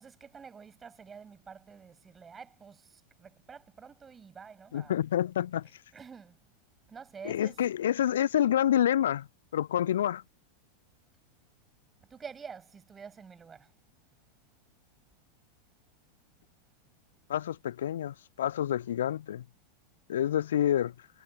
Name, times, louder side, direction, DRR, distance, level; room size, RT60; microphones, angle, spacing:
voice 1, 0.0-5.0 5.9-6.4 6.9-7.6 12.1-13.7 20.3-20.5, right 6 dB, 20° right, 7.1 m, -48 dB
voice 2, 4.7-5.8 7.2-9.3 9.5-10.2 17.3-19.4 20.1-21.1, left 11 dB, 60° left, 0.4 m, -28 dB
figure-of-eight pair, 90°, 0 cm